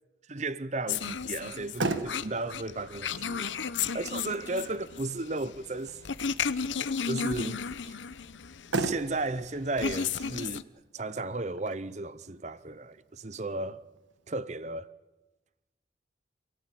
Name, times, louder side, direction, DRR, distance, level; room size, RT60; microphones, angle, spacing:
voice 1, 0.3-3.5 3.9-6.0 7.0-8.0 8.7-10.7 10.9-13.8 14.3-14.9, right 2 dB, 40° right, 0.7 m, -34 dB
sound 1, 0.9-10.6, left 6 dB, 85° left, 0.9 m, -34 dB
Motor vehicle (road), 1.4-14.4, right 2 dB, 90° right, 1.5 m, -40 dB
27.5 x 16.5 x 9.1 m
head